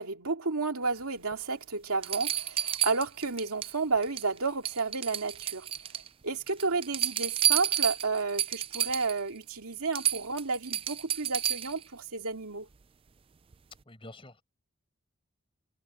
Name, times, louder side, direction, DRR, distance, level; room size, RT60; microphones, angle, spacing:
voice 1, 0.0-5.7 6.2-12.7, right 4 dB, 85° right, 2.5 m, -31 dB
sound 1, 1.3-1.4 2.0-3.7 4.0-4.4 4.6-6.1 6.5-9.2 9.6-9.7 9.9-11.8 13.5-13.6, right 11 dB, 25° right, 0.3 m, -30 dB
voice 2, 13.9-14.4, left 1 dB, 25° left, 5.4 m, -48 dB
head